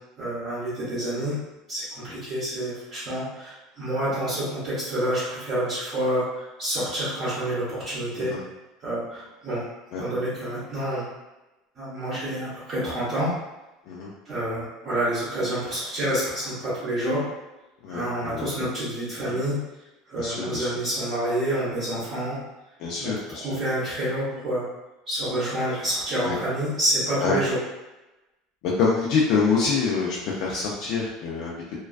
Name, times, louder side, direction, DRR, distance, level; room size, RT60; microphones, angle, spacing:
voice 1, 0.2-1.4 1.7-8.3 8.8-9.7 10.0-11.0 11.8-13.3 14.3-17.2 17.9-19.6 20.1-22.4 23.0-23.1 23.4-24.6 25.1-27.6, right 1 dB, 30° right, -9 dB, 0.8 m, -28 dB
voice 2, 17.8-18.7 19.2-19.3 20.2-20.7 22.8-23.5 26.2-26.4 27.2-27.4 28.6-31.8, left 5 dB, 55° left, -4 dB, 0.4 m, -26 dB
2.3 x 2.2 x 2.4 m, 1.0 s
cardioid pair, 155°, 0 cm